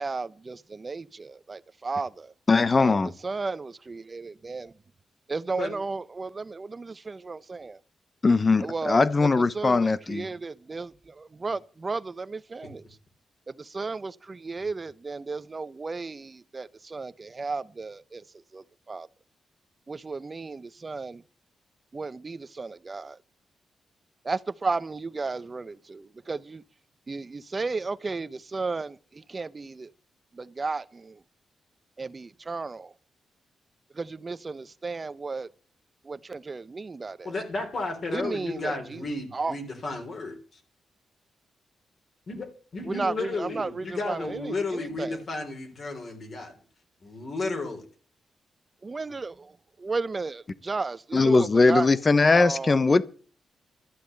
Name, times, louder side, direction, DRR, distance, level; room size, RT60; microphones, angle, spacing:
voice 1, 0.0-2.3 2.8-3.0 3.2-4.7 5.3-7.8 8.6-12.9 13.5-18.2 18.5-19.1 19.9-21.2 21.9-23.2 24.2-26.6 27.1-29.9 30.3-31.2 32.0-32.9 33.9-35.5 36.0-37.3 38.1-39.6 42.8-45.2 48.8-52.0 52.3-53.0, right 3 dB, 30° right, 0.7 m, -34 dB
voice 2, 2.5-3.1 8.2-10.3 51.1-53.0, left 3 dB, 30° left, 0.9 m, -20 dB
voice 3, 37.2-40.6 42.3-46.5 47.0-47.8, left 3 dB, 45° left, 3.7 m, -33 dB
13.0 x 8.5 x 7.8 m
cardioid pair, 120°, 0 cm